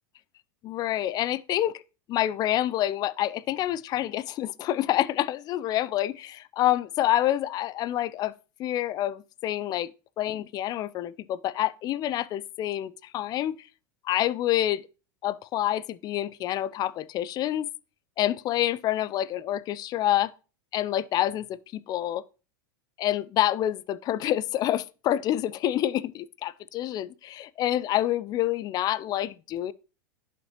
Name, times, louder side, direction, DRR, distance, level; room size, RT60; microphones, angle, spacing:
voice 1, 0.6-1.8 2.1-8.3 8.6-9.9 10.2-13.7 14.0-14.8 15.2-17.7 18.2-20.3 20.7-22.2 23.0-29.7, left 13 dB, 35° left, 0.5 m, -27 dB
11.0 x 5.8 x 3.0 m
figure-of-eight pair, 85°, 12 cm